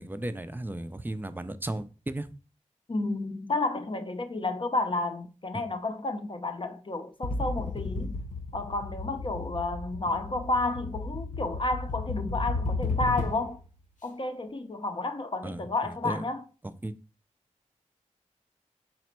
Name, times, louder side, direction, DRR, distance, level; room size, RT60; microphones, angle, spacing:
voice 1, 0.0-2.3 5.5-5.6 10.1-10.2 15.4-16.3 16.6-16.9, right 1 dB, 15° right, 0.3 m, -35 dB
voice 2, 2.9-8.2 8.5-13.6 14.0-16.4, left 2 dB, 40° left, 0.5 m, -31 dB
sound 1, 7.2-13.6, left 3 dB, 75° left, 0.9 m, -33 dB
4.0 x 2.1 x 4.3 m
cardioid pair, 55°, 13 cm